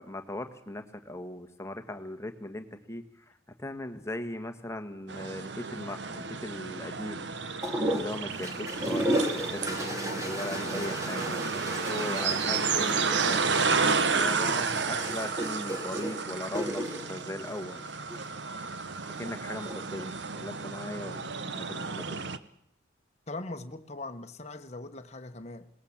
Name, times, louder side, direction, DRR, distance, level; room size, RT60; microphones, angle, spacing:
voice 1, 0.0-7.3 8.0-11.4 11.9-17.8 19.2-22.2, left 1 dB, 15° left, 1.5 m, -39 dB
sound 1, 5.1-22.4, right 5 dB, 65° right, 1.0 m, -32 dB
sound 2, 7.6-18.3 19.5-20.1, equal, 15° right, 2.4 m, -34 dB
voice 2, 23.3-25.7, left 2 dB, 35° left, 1.2 m, -40 dB
21.5 x 19.0 x 7.3 m
head